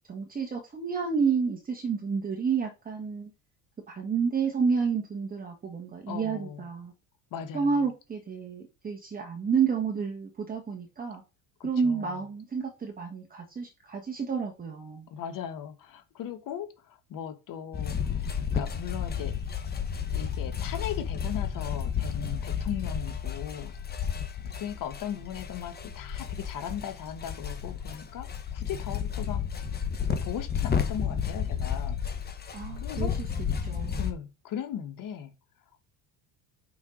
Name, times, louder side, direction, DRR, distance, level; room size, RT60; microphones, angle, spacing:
voice 1, 0.1-3.3 3.9-6.9 7.5-11.2 11.6-15.0 32.5-33.1 33.4-34.0, right 5 dB, 20° right, 1.2 m, -30 dB
voice 2, 6.1-6.6 7.3-7.8 11.6-12.2 15.1-19.4 20.1-23.8 24.5-29.4 30.0-32.0 32.8-33.2 34.0-35.3, left 9 dB, 50° left, 1.3 m, -38 dB
sound 1, 17.7-34.1, left 7 dB, 25° left, 1.1 m, -32 dB
6.1 x 5.6 x 3.8 m
supercardioid pair, 115°, 41 cm